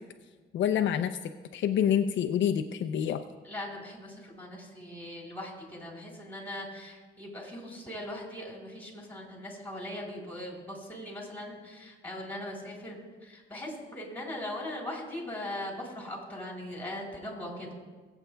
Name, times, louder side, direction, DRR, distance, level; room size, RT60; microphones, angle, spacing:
voice 1, 0.5-1.2 1.5-3.2, left 9 dB, 70° left, 6 dB, 0.6 m, -27 dB
voice 2, 3.4-17.7, left 1 dB, 10° left, -1 dB, 3.6 m, -40 dB
22.5 x 8.0 x 2.3 m, 1.4 s
cardioid pair, 90°, 20 cm